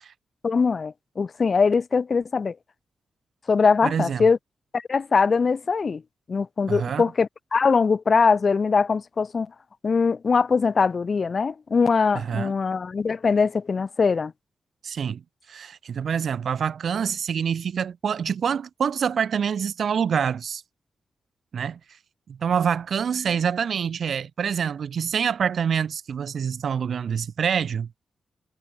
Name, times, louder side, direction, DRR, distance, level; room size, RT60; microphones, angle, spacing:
voice 1, 0.4-2.6 3.5-4.4 4.7-6.0 6.3-9.5 9.8-14.3, left 5 dB, 40° left, 3.4 m, -22 dB
voice 2, 3.8-4.3 6.7-7.0 12.1-12.5 14.8-15.2 15.5-20.6 21.5-21.8 22.3-27.9, right 7 dB, 65° right, 4.7 m, -26 dB
wide cardioid pair, 140°, 0 cm